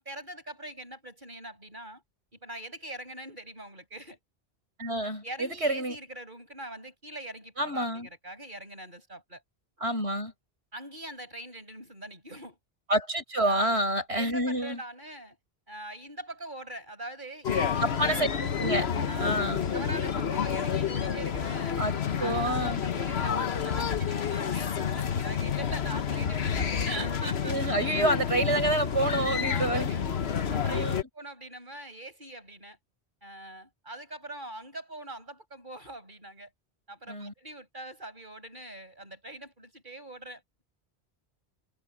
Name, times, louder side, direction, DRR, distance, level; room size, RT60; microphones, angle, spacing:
voice 1, 0.0-2.0 2.3-4.2 5.2-9.4 10.7-12.6 13.5-13.8 14.1-15.4 15.7-18.4 19.1-19.3 19.7-21.8 22.2-27.7 29.4-30.1 30.5-30.8 31.1-32.8 33.2-36.5 36.9-40.6, right 1 dB, 45° right, 7.9 m, -42 dB
voice 2, 4.8-6.0 7.6-8.1 9.8-10.3 12.9-14.8 17.8-18.3 18.6-18.9 19.2-19.6 21.8-21.9 22.2-22.8 27.4-29.9 30.7-31.0 37.1-37.3, right 1 dB, 75° right, 7.6 m, -28 dB
sound 1, 17.4-31.0, left 7 dB, 70° left, 1.3 m, -29 dB
omnidirectional pair, 1.1 m